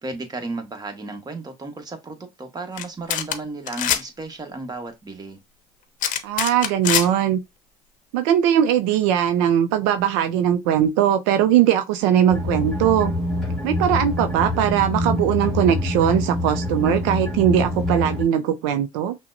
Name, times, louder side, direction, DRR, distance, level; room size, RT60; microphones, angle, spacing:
voice 1, 0.0-5.4, right 3 dB, 25° right, 1.2 m, -34 dB
sound 1, 2.8-2.9 3.1-3.4 3.7-4.0 6.0-7.1, left 10 dB, 60° left, 0.7 m, -23 dB
voice 2, 6.2-7.4 8.1-13.1 13.6-19.2, right 10 dB, 80° right, 0.4 m, -20 dB
sound 2, 12.3-18.2, left 1 dB, 5° left, 1.5 m, -25 dB
5.7 x 2.1 x 2.6 m
hypercardioid pair, 70°, 15 cm